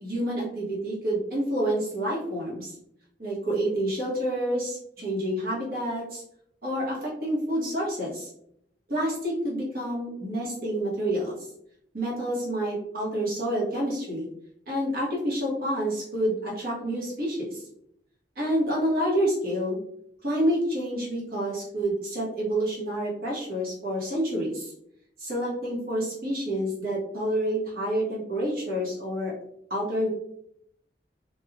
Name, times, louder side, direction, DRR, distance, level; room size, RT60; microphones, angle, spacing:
voice 1, 0.0-2.7 3.2-6.2 6.6-8.3 8.9-11.4 11.9-14.3 14.7-17.6 18.4-19.8 20.2-24.7 25.2-29.3 29.7-30.1, right 1 dB, 55° right, -4 dB, 1.1 m, -28 dB
3.1 x 2.3 x 2.3 m, 0.72 s
head